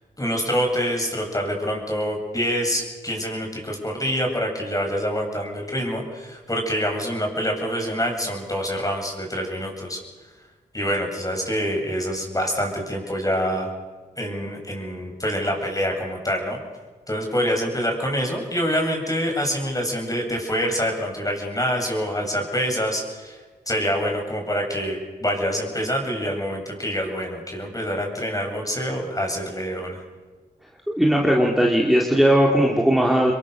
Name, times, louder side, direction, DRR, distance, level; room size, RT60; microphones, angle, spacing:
voice 1, 0.2-10.0 10.7-13.7 14.2-16.6 17.1-23.4 23.7-30.0, equal, 20° left, 2 dB, 8.0 m, -26 dB
voice 2, 30.9-33.3, equal, ahead, -2 dB, 4.0 m, -18 dB
28.0 x 22.5 x 6.9 m, 1.3 s
cardioid pair, 60°, 17 cm